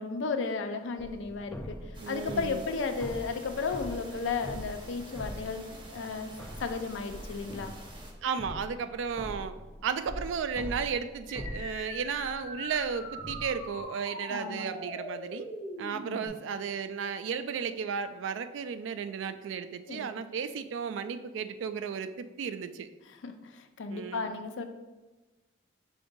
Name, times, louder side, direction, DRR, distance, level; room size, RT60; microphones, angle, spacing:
voice 1, 0.0-1.8 2.1-6.3 6.6-7.7 14.3-14.6 19.9-20.1 23.2-24.6, left 4 dB, 75° left, 7 dB, 0.4 m, -34 dB
sound 1, 1.0-6.1 6.4-13.8, equal, 5° left, 0.4 m, -43 dB
sound 2, 1.9-8.1, right 1 dB, 25° right, 0.7 m, -48 dB
voice 2, 2.0-2.6 8.2-9.5 9.8-15.5 15.8-22.9 23.9-24.3, right 6 dB, 75° right, 11 dB, 0.3 m, -34 dB
sound 3, 11.3-16.3, equal, 30° left, 0.9 m, -41 dB
5.1 x 3.8 x 2.6 m, 1.2 s
head